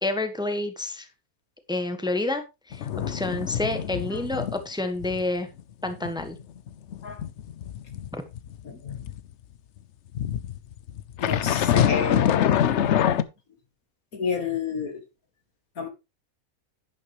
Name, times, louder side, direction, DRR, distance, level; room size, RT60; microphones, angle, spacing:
voice 1, 0.0-1.1 1.7-5.5 5.8-6.4 8.1-8.2, left 2 dB, 5° right, 1.3 m, -29 dB
sound 1, 2.7-4.6 5.0-5.2 5.6-9.2 10.1-13.2, left 9 dB, 60° left, 0.9 m, -25 dB
voice 2, 8.6-9.0 11.2-12.4 14.1-15.0 15.8-15.9, left 6 dB, 80° left, 2.4 m, -30 dB
11.0 x 9.9 x 3.1 m
omnidirectional pair, 1.5 m